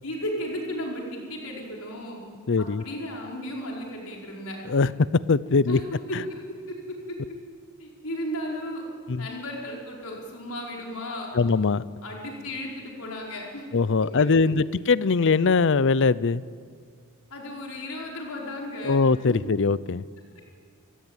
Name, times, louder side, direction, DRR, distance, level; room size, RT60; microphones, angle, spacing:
voice 1, 0.0-2.2 2.6-4.6 5.7-5.8 6.1-6.2 6.7-7.2 7.8-8.8 9.2-11.3 12.0-13.6 14.2-14.3 17.3-19.0 19.3-19.4 20.4-20.5, left 1 dB, 75° left, -1 dB, 5.0 m, -34 dB
voice 2, 2.5-2.8 4.7-5.8 6.1-6.2 9.1-9.3 11.3-11.8 13.7-16.4 18.8-20.0, left 4 dB, 55° left, 19 dB, 0.6 m, -21 dB
29.0 x 17.5 x 8.9 m, 2.1 s
head